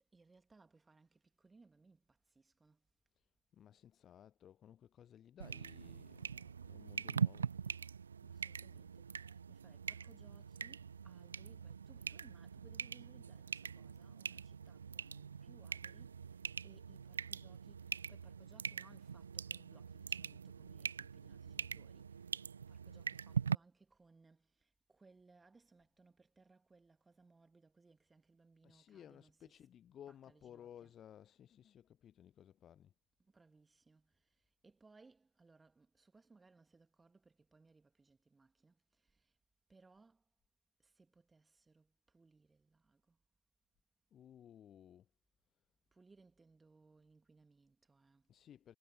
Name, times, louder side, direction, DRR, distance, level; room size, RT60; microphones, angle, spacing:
voice 1, 0.1-2.8 8.2-22.3 22.7-29.6 30.1-30.9 33.2-39.4 39.7-40.2 40.8-43.2 45.9-48.3, right 3 dB, 10° right, 2.6 m, -67 dB
voice 2, 3.5-7.5 28.6-32.9 44.1-45.1 48.3-48.8, left 10 dB, 25° left, 0.6 m, -58 dB
sound 1, 5.4-23.5, right 6 dB, 70° right, 0.5 m, -43 dB
figure-of-eight pair, 90°, 0 cm